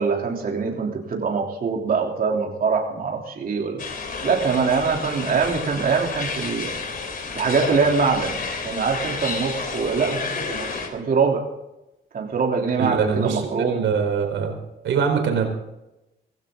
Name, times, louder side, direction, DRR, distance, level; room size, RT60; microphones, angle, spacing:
voice 1, 0.0-3.8 4.2-6.7 7.3-11.5 12.1-13.8, right 5 dB, 45° right, 0 dB, 3.4 m, -23 dB
sound 1, 3.8-10.9, left 4 dB, 45° left, 3.2 m, -30 dB
voice 2, 12.8-14.6 14.8-15.5, right 6 dB, 75° right, 3 dB, 4.4 m, -23 dB
18.0 x 15.5 x 3.9 m, 0.94 s
cardioid pair, 90°, 20 cm